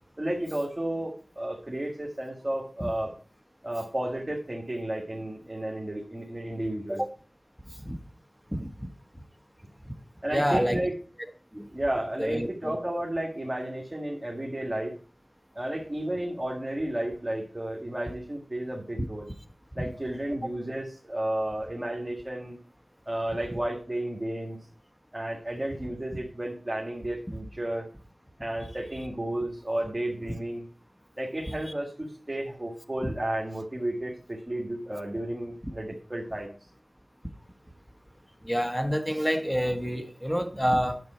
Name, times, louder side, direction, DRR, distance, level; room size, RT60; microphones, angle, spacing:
voice 1, 0.2-3.1 3.6-7.0 10.2-10.9 11.7-14.9 15.6-19.3 19.8-22.6 23.1-24.6 25.1-27.9 28.4-30.6 31.2-36.5, right 1 dB, 25° right, 2.0 m, -32 dB
voice 2, 10.3-10.8 11.5-11.7 12.2-12.7 19.0-19.1 31.5-31.6 33.0-33.1 38.4-41.0, equal, 5° left, 1.3 m, -27 dB
9.4 x 7.8 x 4.4 m
wide cardioid pair, 45°, 0 cm